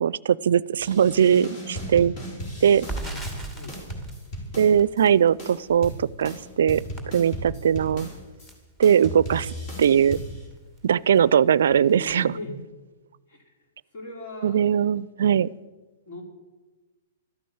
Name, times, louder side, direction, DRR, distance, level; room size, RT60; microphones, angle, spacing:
voice 1, 0.0-2.1 2.6-2.9 4.6-6.8 7.1-8.1 8.8-9.5 9.8-10.2 10.8-12.3 14.4-15.5, right 8 dB, 70° right, 21 dB, 0.4 m, -20 dB
sound 1, 0.8-5.1 5.4-8.5 8.8-10.5, equal, 40° left, 4.5 m, -36 dB
voice 2, 2.7-3.3 3.5-3.8 11.7-12.6 13.3-13.5 13.9-14.6 16.1-16.2, left 1 dB, 60° left, 1 dB, 4.7 m, -39 dB
Crackle, 2.7-10.8 11.1-11.3 11.6-12.3, right 2 dB, 15° left, 2.5 m, -41 dB
13.0 x 9.3 x 8.6 m, 1.2 s
hypercardioid pair, 125°, 0 cm